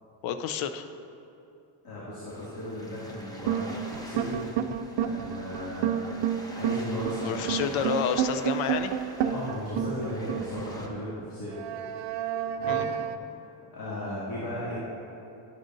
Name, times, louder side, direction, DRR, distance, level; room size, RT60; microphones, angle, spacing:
voice 1, 0.2-0.8 7.2-8.9 12.7-12.9, left 7 dB, 90° left, 9 dB, 0.7 m, -29 dB
voice 2, 1.8-4.7 5.0-6.1 6.5-7.5 9.2-11.5 12.6-13.0 13.7-14.8, left 1 dB, 45° left, -8 dB, 2.3 m, -36 dB
sound 1, 2.3-10.9, equal, 10° left, 0.8 m, -45 dB
sound 2, 3.5-11.0 11.6-13.2, right 10 dB, 65° right, 0.6 m, -30 dB
11.5 x 10.0 x 2.6 m, 2.7 s
cardioid pair, 130°, 47 cm